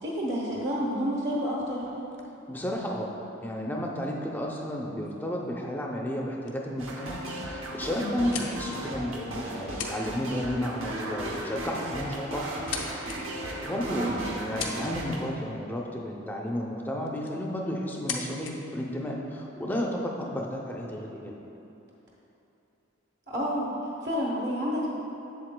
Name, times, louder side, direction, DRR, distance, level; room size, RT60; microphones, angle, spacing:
voice 1, 0.0-1.8 7.9-8.3 14.0-14.1 23.3-23.7 24.0-24.9, equal, 55° right, -5 dB, 1.0 m, -29 dB
sound 1, 1.2-3.8 4.7-4.8 5.0-5.3 5.9-6.2 6.5-6.6 6.9-7.4 7.9-9.0 9.6-10.1 10.4-10.7 11.7-11.8 12.3-13.2 13.8-13.9 14.4-15.2 16.5-16.6 17.1-17.4 17.9-18.5, left 7 dB, 70° left, 0.6 m, -40 dB
voice 2, 2.5-3.1 3.4-12.4 13.3-21.3, equal, 10° left, -1 dB, 0.5 m, -32 dB
sound 2, 6.8-15.2, right 1 dB, 85° right, 0.9 m, -36 dB
7.7 x 7.6 x 2.2 m, 3.0 s
head